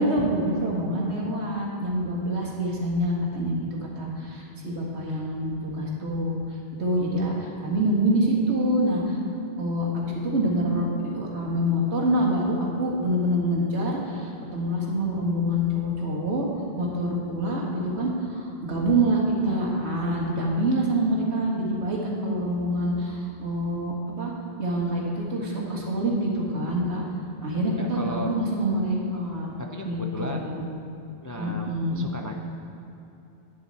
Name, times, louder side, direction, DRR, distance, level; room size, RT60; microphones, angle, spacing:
voice 1, 0.0-3.7 4.0-6.4 6.8-9.2 9.6-10.9 11.1-16.5 16.8-24.3 24.6-27.0 27.4-29.5 29.8-30.6 31.4-32.1, right 1 dB, 80° right, -3 dB, 2.2 m, -26 dB
voice 2, 27.8-28.3 29.6-30.6 31.2-32.4, left 1 dB, 30° left, 2 dB, 0.4 m, -36 dB
11.0 x 10.0 x 4.2 m, 2.9 s
omnidirectional pair, 1.1 m